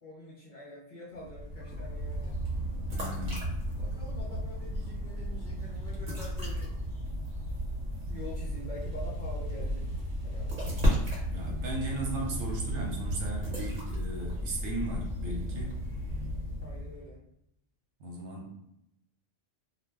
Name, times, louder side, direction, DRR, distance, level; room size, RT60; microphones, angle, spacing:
voice 1, 0.0-2.4 3.8-6.7 8.1-10.9 16.6-17.2, left 1 dB, 50° left, -6 dB, 0.7 m, -46 dB
sound 1, 1.2-17.1, equal, 40° right, 1.0 m, -34 dB
voice 2, 2.9-3.6 11.3-15.8 18.0-18.6, right 2 dB, 70° right, -1 dB, 1.0 m, -37 dB
sound 2, 5.5-12.9, right 2 dB, 20° right, 0.7 m, -49 dB
2.5 x 2.1 x 3.4 m, 0.80 s
omnidirectional pair, 1.3 m